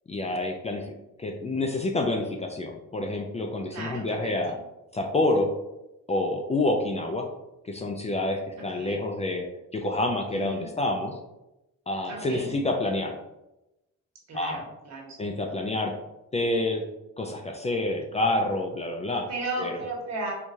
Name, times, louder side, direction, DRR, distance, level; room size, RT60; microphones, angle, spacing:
voice 1, 0.1-4.6 4.9-5.5 6.1-7.3 7.6-9.5 9.7-11.2 11.9-13.2 14.3-14.6 15.2-15.9 16.3-16.8 17.2-19.3 19.6-19.8, left 2 dB, 20° left, 3 dB, 0.4 m, -28 dB
voice 2, 3.7-4.3 8.8-9.0 10.3-10.7 12.1-12.5 14.3-15.2 15.5-15.6 19.3-20.3, right 2 dB, 60° right, -2 dB, 1.3 m, -35 dB
4.6 x 2.3 x 2.7 m, 0.93 s
cardioid pair, 90°, 30 cm